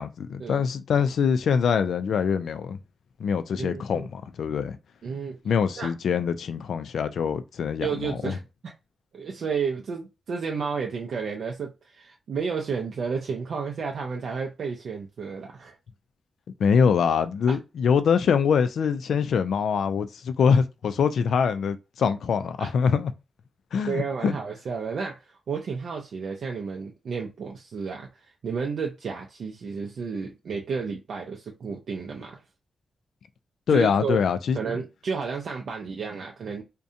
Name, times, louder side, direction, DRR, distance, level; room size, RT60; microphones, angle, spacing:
voice 1, 0.0-2.8 3.2-4.8 5.4-8.3 16.6-23.1 23.7-24.3 33.7-34.6, left 6 dB, 75° left, 0.3 m, -24 dB
voice 2, 3.6-4.1 5.0-5.4 5.8-5.9 7.8-8.7 9.1-15.8 17.5-17.6 22.6-22.7 23.8-32.4 33.7-34.2 34.5-36.6, right 5 dB, 65° right, 0.4 m, -32 dB
2.7 x 2.1 x 2.5 m
wide cardioid pair, 125°, 0 cm